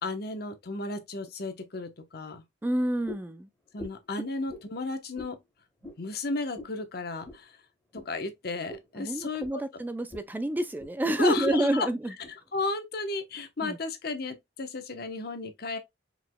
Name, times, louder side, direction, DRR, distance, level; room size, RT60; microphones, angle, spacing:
voice 1, 0.0-2.4 3.7-5.4 6.0-7.6 8.0-9.6 11.2-11.9 12.3-15.8, left 3 dB, 60° left, 1.0 m, -33 dB
voice 2, 2.6-3.5 9.0-12.0 13.6-13.8, right 1 dB, 10° right, 0.3 m, -28 dB
sound 1, 3.0-3.3 3.8-4.1 4.5-4.7 5.1-5.4 5.8-6.0 6.5-6.8 7.2-7.4 7.9-8.1 8.7-8.9 9.4-9.6 10.1-10.3 10.6-10.9 11.5-11.6 12.2-12.3, left 2 dB, 10° left, 1.9 m, -43 dB
4.7 x 4.0 x 2.2 m
head